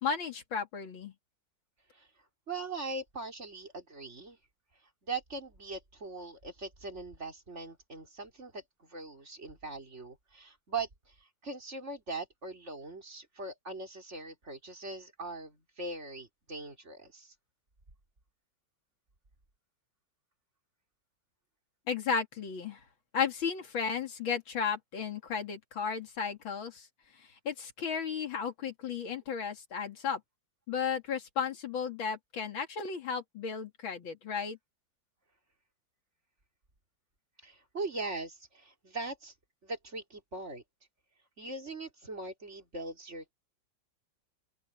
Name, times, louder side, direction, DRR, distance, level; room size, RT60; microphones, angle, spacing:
voice 1, 0.0-1.1 21.9-22.8 23.1-26.9 27.4-30.2 30.7-34.6, left 6 dB, 80° left, 3.0 m, -34 dB
voice 2, 2.5-4.4 5.1-11.1 11.4-17.3 37.4-39.3 39.6-40.6 41.4-43.3, right 3 dB, 35° right, 4.2 m, -41 dB
open air
omnidirectional pair, 2.1 m